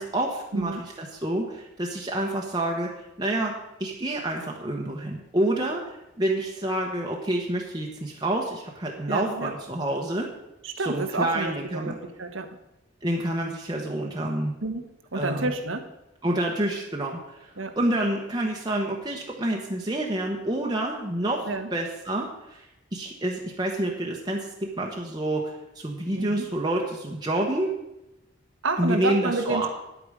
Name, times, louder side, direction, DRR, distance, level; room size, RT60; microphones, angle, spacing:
voice 1, 0.0-2.9 3.2-10.3 10.8-12.0 13.0-14.5 15.1-15.5 16.2-22.7 22.9-27.7 28.8-29.7, right 1 dB, 20° right, -1 dB, 1.0 m, -28 dB
voice 2, 9.1-9.5 10.6-12.6 14.6-14.8 15.1-15.9 17.6-17.8 21.5-21.7 26.1-26.5 28.6-29.7, right 3 dB, 90° right, 7 dB, 1.2 m, -29 dB
9.7 x 8.5 x 5.0 m, 0.92 s
head